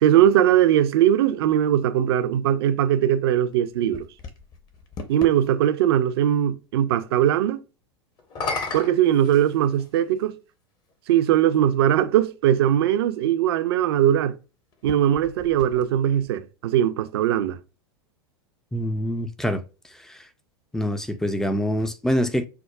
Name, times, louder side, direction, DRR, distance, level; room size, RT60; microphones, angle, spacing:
voice 1, 0.0-4.1 5.1-7.6 8.7-10.4 11.1-14.4 14.8-17.6, right 11 dB, 65° right, 0.4 m, -20 dB
sound 1, 3.5-5.4 8.2-10.0 10.9-11.0 14.7-16.3, left 3 dB, 30° left, 0.7 m, -35 dB
voice 2, 18.7-19.6 20.0-20.2 20.7-22.5, equal, 5° left, 0.3 m, -25 dB
4.6 x 2.0 x 2.2 m
hypercardioid pair, 95°, 14 cm